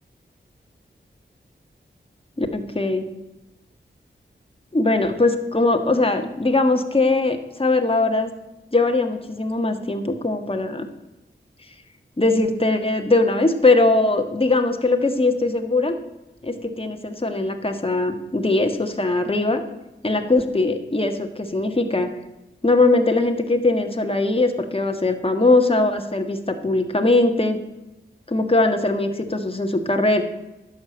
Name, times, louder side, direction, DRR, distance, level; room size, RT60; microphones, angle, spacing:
voice 1, 2.4-3.1 4.7-8.3 8.7-10.9 12.2-16.0 16.4-19.6 20.0-22.1 22.6-27.6 28.3-30.2, left 2 dB, 30° left, 5 dB, 1.6 m, -20 dB
11.0 x 7.1 x 7.8 m, 0.99 s
cardioid pair, 45°, 20 cm